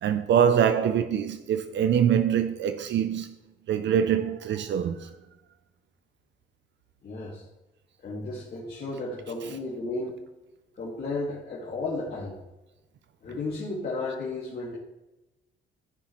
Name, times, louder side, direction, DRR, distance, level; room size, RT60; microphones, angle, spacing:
voice 1, 0.0-3.3 3.7-5.1, right 8 dB, 65° right, 0.6 m, -24 dB
voice 2, 7.0-7.4 8.0-10.1 10.8-12.4 13.2-14.8, left 2 dB, 50° left, 2.2 m, -33 dB
14.0 x 5.7 x 3.2 m
cardioid pair, 90°, 20 cm